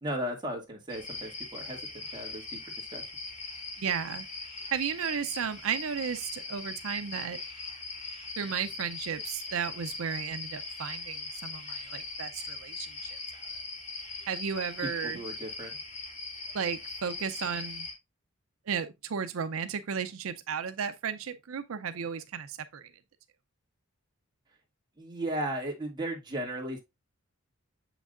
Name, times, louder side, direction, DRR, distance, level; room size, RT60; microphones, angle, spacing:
voice 1, 0.0-3.1 15.0-15.7 25.0-26.8, right 1 dB, 20° right, 2.2 m, -36 dB
sound 1, 0.9-17.9, left 3 dB, 35° left, 2.5 m, -40 dB
voice 2, 3.8-4.2 4.7-7.4 8.4-13.1 14.3-15.2 16.5-17.9 18.7-22.9, right 7 dB, 75° right, 0.5 m, -34 dB
7.2 x 6.0 x 2.4 m
head